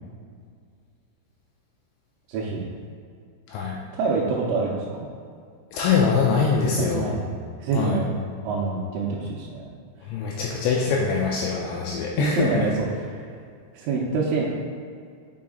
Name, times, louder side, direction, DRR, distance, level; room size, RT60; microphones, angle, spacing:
voice 1, 2.3-2.7 3.9-5.1 6.8-7.3 7.6-9.6 10.9-11.0 12.2-13.1 13.7-14.5, right 4 dB, 85° right, -5 dB, 3.2 m, -26 dB
voice 2, 5.7-7.1 7.7-8.0 10.1-12.7, left 5 dB, 85° left, -2 dB, 2.7 m, -23 dB
6.3 x 5.9 x 3.6 m, 2.2 s
omnidirectional pair, 5.8 m